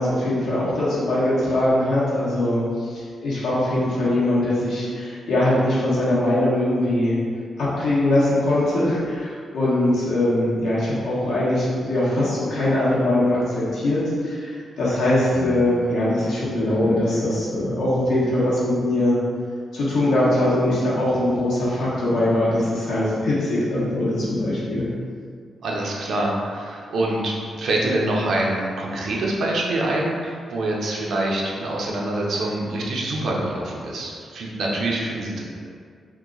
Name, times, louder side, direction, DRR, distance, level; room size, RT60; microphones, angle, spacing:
voice 1, 0.0-7.1 7.6-19.2 19.7-24.9, left 1 dB, 85° left, -8 dB, 1.1 m, -21 dB
voice 2, 25.6-35.6, right 1 dB, 70° right, -3 dB, 0.6 m, -25 dB
2.9 x 2.3 x 3.7 m, 2.1 s
wide cardioid pair, 140°, 0 cm